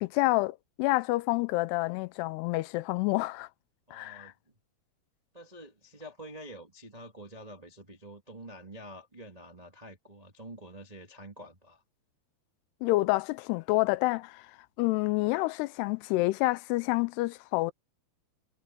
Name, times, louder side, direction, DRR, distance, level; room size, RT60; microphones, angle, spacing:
voice 1, 0.0-3.5 3.9-4.3 12.8-14.4 14.8-17.7, left 20 dB, 85° left, 2.6 m, -28 dB
voice 2, 3.9-4.6 5.3-11.8, right 1 dB, 80° right, 0.3 m, -47 dB
omnidirectional pair, 4.8 m